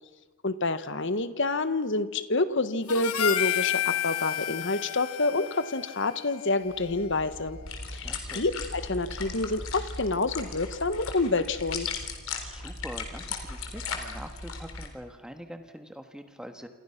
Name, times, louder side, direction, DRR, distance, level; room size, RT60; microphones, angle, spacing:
voice 1, 0.4-7.6 7.9-11.9, left 3 dB, 55° left, 12 dB, 1.4 m, -28 dB
Harmonica, 2.9-7.4, left 11 dB, 85° left, 1.3 m, -31 dB
sound 1, 6.7-14.9, left 4 dB, 70° left, 3.9 m, -37 dB
voice 2, 7.9-8.5 12.4-16.7, equal, 5° right, 6 dB, 1.6 m, -44 dB
28.0 x 27.5 x 6.0 m, 1.3 s
head